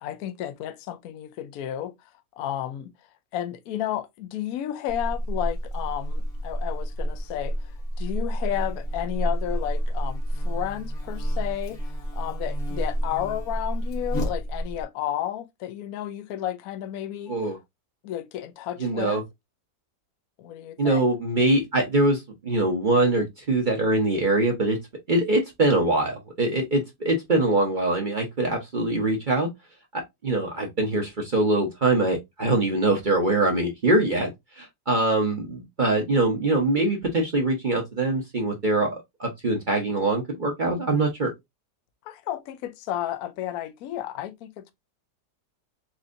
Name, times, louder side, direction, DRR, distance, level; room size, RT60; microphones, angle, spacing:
voice 1, 0.0-1.9 2.4-2.9 3.3-7.6 8.0-17.3 18.0-19.2 20.4-21.0 42.1-44.7, left 11 dB, 70° left, 0.9 m, -32 dB
Buzz, 4.9-14.8, equal, 40° left, 1.0 m, -29 dB
voice 2, 18.8-19.2 20.8-24.8 25.1-29.5 29.9-41.3, right 2 dB, 40° right, 0.7 m, -23 dB
4.2 x 2.7 x 2.5 m
omnidirectional pair, 1.9 m